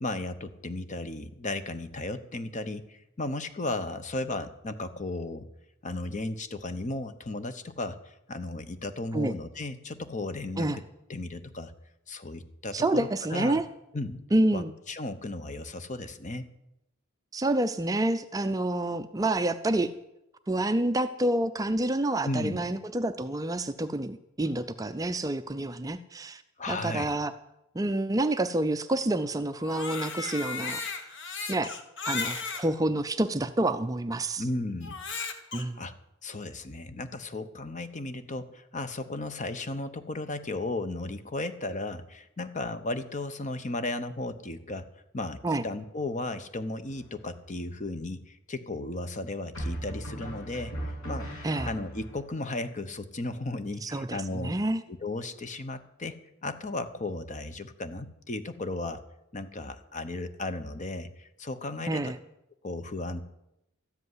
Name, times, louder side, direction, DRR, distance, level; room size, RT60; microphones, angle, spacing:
voice 1, 0.0-5.5 5.8-10.8 11.1-11.7 12.1-13.6 13.9-14.2 14.5-16.5 22.2-22.7 26.6-27.1 34.4-35.0 35.8-35.9 36.2-44.9 45.1-54.5 54.9-56.2 56.4-59.0 59.3-62.1 62.6-63.2, left 2 dB, 35° left, 11 dB, 0.9 m, -35 dB
voice 2, 12.7-13.7 14.3-14.7 17.3-19.9 20.5-26.4 26.7-27.3 27.7-30.8 31.5-31.7 32.1-34.4 35.5-35.8 45.4-45.6 51.4-51.7 53.8-54.8 61.9-62.2, right 1 dB, 15° right, 10 dB, 0.4 m, -28 dB
Crying sobbing, 29.5-32.7 33.4-33.5 34.8-35.6, left 4 dB, 60° left, 1.5 m, -35 dB
sound 1, 46.9-47.5 49.5-52.2, right 1 dB, 80° left, 7.1 m, -37 dB
13.0 x 8.0 x 9.6 m, 0.85 s
head